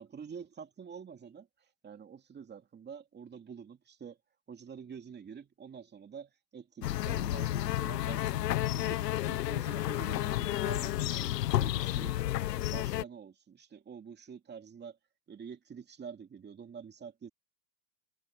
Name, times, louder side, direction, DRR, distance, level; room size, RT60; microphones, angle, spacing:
voice 1, 0.0-4.2 4.5-9.0 9.3-12.2 12.7-15.0 15.3-17.3, right 6 dB, 20° right, 2.8 m, -47 dB
sound 1, 6.8-13.0, left 14 dB, 80° left, 1.4 m, -31 dB
hypercardioid pair, 110°, 48 cm